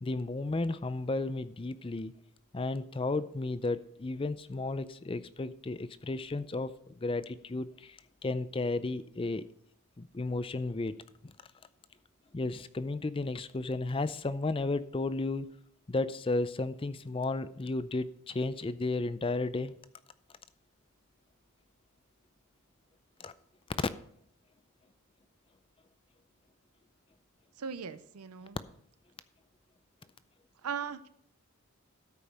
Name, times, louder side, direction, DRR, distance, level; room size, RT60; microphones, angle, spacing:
voice 1, 0.0-2.1 2.5-9.5 10.0-11.0 11.2-11.3 12.3-15.5 15.9-19.7 23.2-23.3, left 2 dB, 25° left, 14 dB, 0.4 m, -33 dB
voice 2, 27.6-28.6 30.6-31.1, right 6 dB, 90° right, 12 dB, 0.6 m, -38 dB
13.0 x 5.3 x 6.1 m, 0.67 s
head